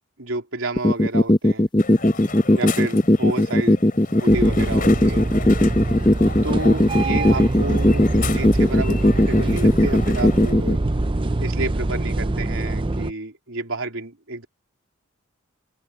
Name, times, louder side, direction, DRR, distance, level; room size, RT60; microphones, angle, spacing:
voice 1, 0.2-1.7 2.5-3.8 4.2-5.3 6.4-10.8 11.4-14.5, right 2 dB, 75° right, 3.6 m, -30 dB
sound 1, 0.8-10.8, left 1 dB, 20° left, 0.9 m, -16 dB
Crowd, 1.8-10.5, left 4 dB, 40° left, 5.2 m, -34 dB
sound 2, 4.3-13.1, right 2 dB, 25° right, 0.6 m, -25 dB
open air
head